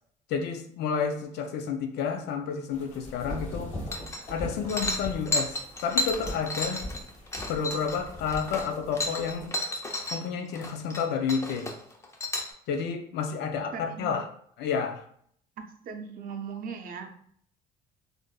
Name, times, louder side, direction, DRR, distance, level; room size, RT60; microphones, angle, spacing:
voice 1, 0.3-3.8 4.3-6.8 7.5-9.6 10.1-11.7 12.7-14.2 14.6-15.0, left 6 dB, 80° left, 6 dB, 0.5 m, -30 dB
sound 1, 2.7-9.5, left 1 dB, 45° left, 1.2 m, -40 dB
sound 2, 3.9-4.4 4.7-10.2 10.5-11.0 11.3-12.5, left 1 dB, 15° left, 0.5 m, -32 dB
voice 2, 13.7-14.1 15.6-17.1, right 6 dB, 55° right, 7 dB, 0.5 m, -38 dB
3.6 x 2.5 x 2.2 m, 0.64 s
cardioid pair, 110°, 17 cm